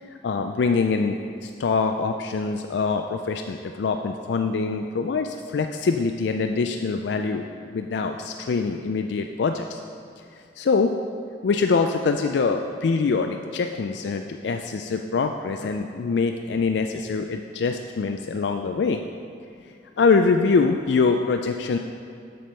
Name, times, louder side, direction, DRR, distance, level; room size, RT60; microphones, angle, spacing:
voice 1, 0.2-9.8 10.3-11.0 11.4-19.0 20.0-21.8, left 4 dB, 80° left, 5 dB, 0.4 m, -24 dB
7.5 x 6.9 x 5.5 m, 2.4 s
head